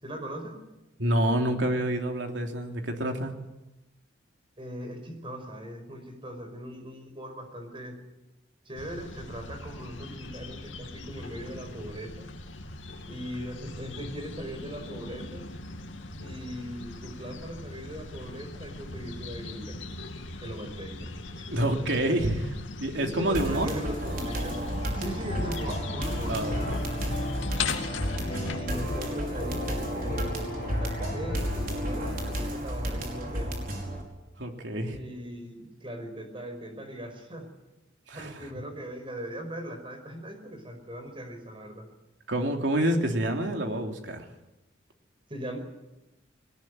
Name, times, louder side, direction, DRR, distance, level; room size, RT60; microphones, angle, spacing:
voice 1, 0.0-0.6 4.6-8.0 8.7-12.3 13.1-15.4 16.2-19.8 20.4-21.1 21.4-21.5 23.0-24.6 24.9-26.8 28.2-33.6 34.8-37.5 38.1-41.9 45.3-45.6, equal, 30° right, 6 dB, 5.3 m, -39 dB
voice 2, 1.0-3.3 21.5-23.7 26.3-26.6 34.4-35.0 38.1-38.4 42.3-44.3, right 1 dB, 70° right, 3 dB, 3.2 m, -27 dB
sound 1, 8.7-28.6, left 3 dB, 85° left, 2.4 m, -39 dB
sound 2, 23.3-34.0, equal, 50° right, 5.2 m, -32 dB
sound 3, 25.3-32.5, left 2 dB, 50° left, 1.4 m, -37 dB
21.0 x 19.5 x 9.4 m, 0.97 s
head